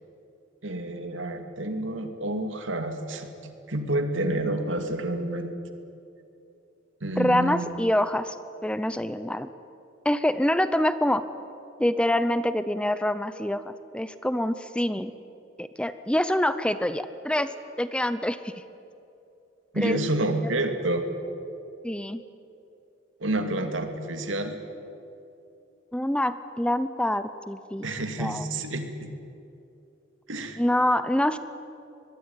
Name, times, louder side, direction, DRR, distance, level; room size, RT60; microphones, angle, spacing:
voice 1, 0.6-5.5 7.0-7.7 19.7-21.1 23.2-24.6 27.8-29.1 30.3-30.6, right 1 dB, 75° right, 6 dB, 2.5 m, -29 dB
voice 2, 7.2-8.4 8.6-9.5 10.0-11.2 11.8-15.1 15.6-18.5 19.8-20.0 21.8-22.2 25.9-27.9 28.2-28.4 30.6-31.4, left 1 dB, 5° left, 12 dB, 0.6 m, -26 dB
24.0 x 21.0 x 9.7 m, 2.7 s
head